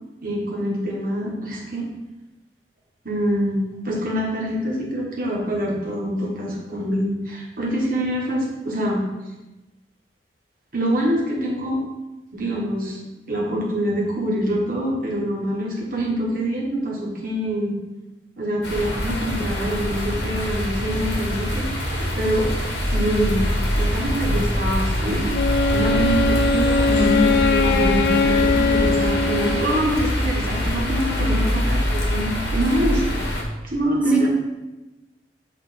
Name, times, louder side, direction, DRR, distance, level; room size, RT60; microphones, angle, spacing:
voice 1, 0.2-1.9 3.0-9.0 10.7-11.8 12.3-13.0 13.3-17.7 18.4-22.5 22.9-23.5 23.7-25.3 25.7-33.0 33.6-34.3, equal, 50° right, -3 dB, 1.4 m, -25 dB
sound 1, 18.6-33.4, left 1 dB, 85° left, 1.4 m, -24 dB
Wind instrument woodwind instrument, 25.3-30.1, left 3 dB, 60° left, 0.3 m, -21 dB
voice 2, 26.9-27.4 27.7-27.9 34.1-34.3, left 2 dB, 5° right, -4 dB, 1.1 m, -22 dB
8.1 x 2.9 x 4.2 m, 1.1 s
head